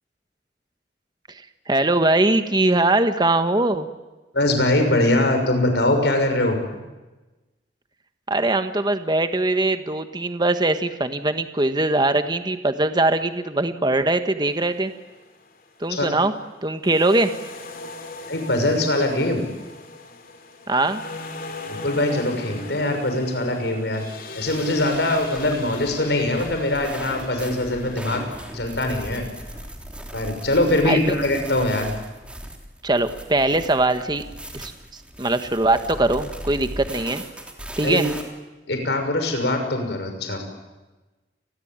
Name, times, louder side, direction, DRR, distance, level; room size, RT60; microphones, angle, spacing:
voice 1, 1.7-3.9 8.3-14.9 15.8-16.3 16.6-17.3 20.7-21.0 30.8-31.2 32.8-34.2 34.5-34.7 35.2-37.2 37.8-38.1, right 2 dB, 25° right, 9 dB, 1.4 m, -21 dB
voice 2, 4.3-6.6 15.9-16.1 18.3-19.4 21.7-24.0 24.3-28.2 28.5-29.2 30.1-31.9 37.8-38.0 38.7-40.4, left 1 dB, 75° left, 5 dB, 6.0 m, -22 dB
sound 1, 14.5-15.9 16.8-29.7, left 3 dB, 55° left, 3.2 m, -40 dB
sound 2, 24.5-38.2, right 1 dB, 5° right, 3.1 m, -38 dB
29.5 x 21.5 x 9.0 m, 1.1 s
head